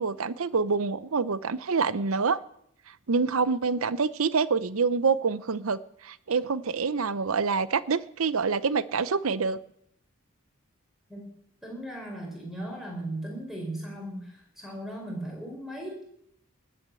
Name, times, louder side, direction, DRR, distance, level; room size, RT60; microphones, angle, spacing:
voice 1, 0.0-2.4 3.1-9.6, right 5 dB, 75° right, 0.7 m, -26 dB
voice 2, 11.6-16.0, right 1 dB, ahead, 4.6 m, -37 dB
19.5 x 8.0 x 7.7 m
head